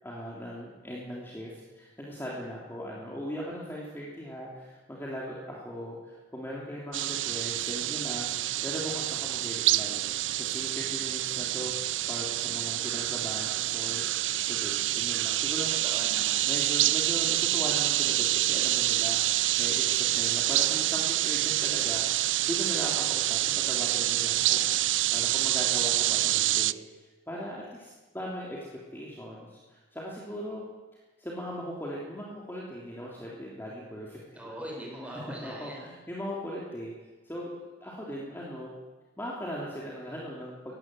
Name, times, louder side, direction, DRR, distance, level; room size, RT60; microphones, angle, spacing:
voice 1, 0.0-10.0 10.4-11.7 12.1-14.0 14.5-15.7 16.4-28.7 28.9-30.6 31.2-34.6 35.4-36.9 37.2-37.5 37.8-38.7 39.2-40.8, equal, 10° left, -4 dB, 3.3 m, -39 dB
sound 1, 6.9-26.7, right 15 dB, 85° right, 0.5 m, -27 dB
voice 2, 15.7-16.5 34.3-35.8, right 1 dB, 10° right, -2 dB, 6.3 m, -41 dB
20.0 x 16.5 x 7.9 m, 1.2 s
head